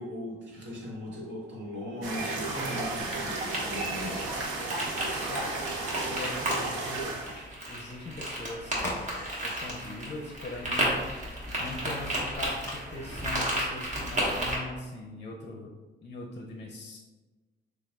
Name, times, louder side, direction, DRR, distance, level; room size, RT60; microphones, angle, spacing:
voice 1, 0.0-4.3, left 1 dB, 70° right, -3 dB, 1.4 m, -38 dB
sound 1, 2.0-7.4, right 2 dB, 90° right, 0.7 m, -33 dB
sound 2, 2.4-14.6, right 1 dB, 40° right, 1.3 m, -34 dB
voice 2, 5.3-5.6 6.0-11.1 11.6-15.7 16.0-17.0, left 2 dB, 35° left, 1 dB, 0.5 m, -41 dB
sound 3, 8.7-13.9, left 1 dB, 15° left, 1.1 m, -44 dB
6.7 x 2.3 x 2.3 m, 1.2 s
cardioid pair, 90°, 20 cm